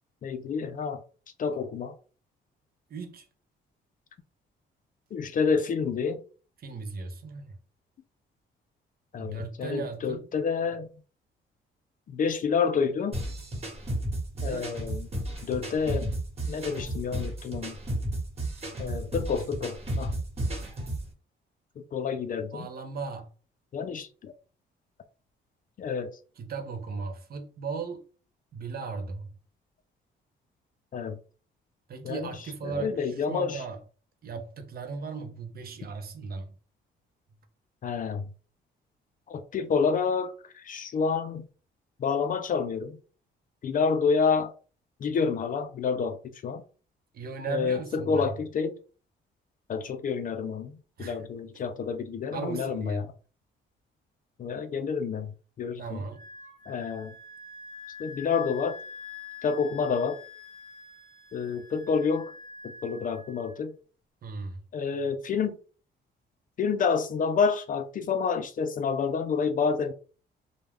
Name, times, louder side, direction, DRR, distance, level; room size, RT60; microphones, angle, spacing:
voice 1, 0.2-1.0 1.4-2.0 5.1-6.2 9.1-10.9 12.1-13.2 14.4-15.1 15.4-16.1 16.4-17.8 18.8-20.1 21.8-22.7 23.7-24.3 25.8-26.2 30.9-31.2 32.0-32.3 32.6-33.6 37.8-38.3 39.3-41.5 42.0-43.0 43.6-44.5 45.0-46.6 47.5-48.8 49.7-50.7 51.0-53.0 54.4-55.3 55.6-56.0 56.7-57.1 58.0-58.8 59.4-60.2 61.3-62.3 62.6-63.7 64.7-65.6 66.6-69.9, left 5 dB, 45° left, 0.4 m, -28 dB
voice 2, 2.9-3.2 6.6-7.6 9.1-10.3 14.3-14.7 22.5-23.3 26.4-28.0 28.5-29.3 31.9-33.8 34.2-36.5 47.1-48.4 51.0-51.3 52.3-53.1 55.8-56.2 64.2-64.6, right 4 dB, 50° right, 0.6 m, -37 dB
sound 1, 13.1-21.1, right 1 dB, 30° right, 1.2 m, -33 dB
Wind instrument woodwind instrument, 56.1-63.6, left 5 dB, 80° right, 0.8 m, -46 dB
2.2 x 2.1 x 3.3 m
cardioid pair, 90°, 20 cm